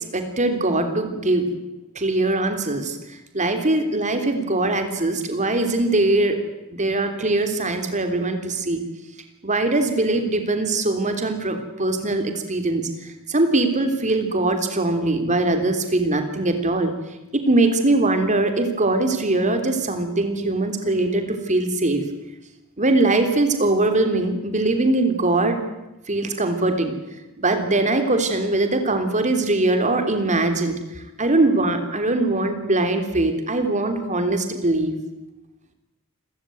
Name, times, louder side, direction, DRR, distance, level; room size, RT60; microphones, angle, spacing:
voice 1, 0.1-1.5 1.9-3.0 3.3-6.4 6.7-8.8 9.4-16.9 17.3-22.0 22.8-25.6 26.1-26.9 27.4-34.9, right 2 dB, 35° right, 6 dB, 3.2 m, -21 dB
28.0 x 15.0 x 9.3 m, 1.0 s
head